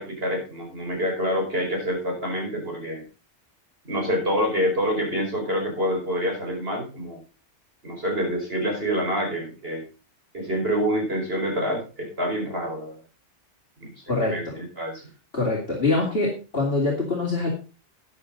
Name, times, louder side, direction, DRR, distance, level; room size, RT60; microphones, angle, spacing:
voice 1, 0.0-3.1 3.8-7.2 7.8-9.8 10.3-13.0 13.8-13.9 14.2-15.0, equal, 55° right, 1 dB, 5.4 m, -27 dB
voice 2, 14.1-14.5 15.3-17.5, left 3 dB, 55° left, -2 dB, 2.9 m, -24 dB
13.5 x 9.7 x 4.0 m, 0.33 s
omnidirectional pair, 1.2 m